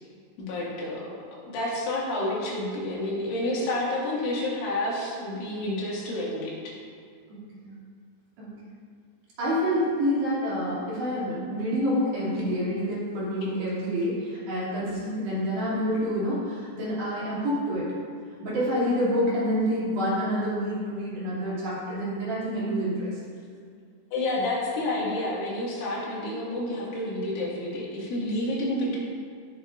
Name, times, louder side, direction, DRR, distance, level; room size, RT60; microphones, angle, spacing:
voice 1, 0.4-6.7 24.1-29.0, left 1 dB, 75° left, -6 dB, 4.6 m, -29 dB
voice 2, 7.3-7.8 8.4-8.5 9.4-17.9 18.4-23.2, equal, 60° right, -9 dB, 4.8 m, -27 dB
17.5 x 7.6 x 2.6 m, 2.2 s
omnidirectional pair, 5.6 m